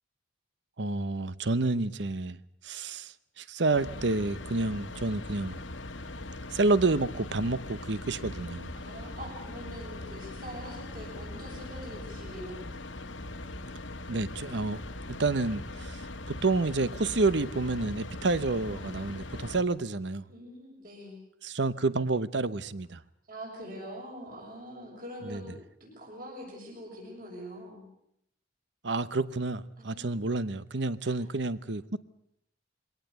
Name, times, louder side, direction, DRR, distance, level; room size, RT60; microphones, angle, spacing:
voice 1, 0.8-2.4 2.6-5.6 6.5-8.7 14.1-14.8 15.1-20.3 21.4-23.0 25.3-25.4 28.8-32.0, right 3 dB, 70° right, 16 dB, 0.9 m, -29 dB
sound 1, 3.7-19.6, left 2 dB, 90° left, 1.7 m, -41 dB
voice 2, 8.8-12.6 20.3-21.2 23.3-27.8 29.8-30.0 31.0-31.1, equal, 50° right, -1 dB, 7.0 m, -44 dB
23.0 x 18.5 x 8.1 m, 0.73 s
head